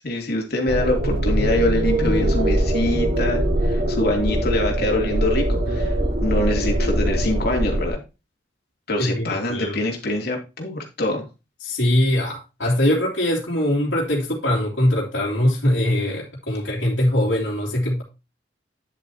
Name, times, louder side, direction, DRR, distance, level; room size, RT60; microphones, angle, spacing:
voice 1, 0.0-8.0 8.9-11.3, left 1 dB, 60° left, 3.0 m, -25 dB
sound 1, 0.7-7.9, right 1 dB, 60° right, 3.2 m, -22 dB
voice 2, 9.0-9.8 11.6-18.0, left 1 dB, 85° left, 2.9 m, -22 dB
10.5 x 7.2 x 2.9 m
head